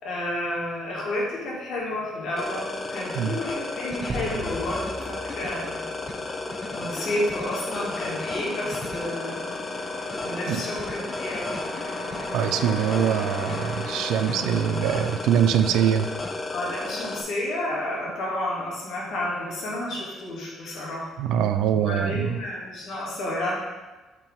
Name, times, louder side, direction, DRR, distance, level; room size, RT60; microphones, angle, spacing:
voice 1, 0.0-5.8 6.7-9.5 10.2-11.6 16.5-21.1 21.7-23.5, left 1 dB, 60° left, -4 dB, 1.9 m, -31 dB
sound 1, 1.4-1.9 2.2-17.4, left 1 dB, 80° left, 1.3 m, -41 dB
sound 2, 2.4-17.2, left 2 dB, 20° left, 0.4 m, -33 dB
sound 3, 4.1-6.7, right 2 dB, 30° right, 0.7 m, -38 dB
voice 2, 12.3-16.1 21.2-22.3, right 9 dB, 80° right, 9 dB, 0.4 m, -23 dB
5.7 x 4.6 x 3.6 m, 1.2 s
cardioid pair, 150°, 0 cm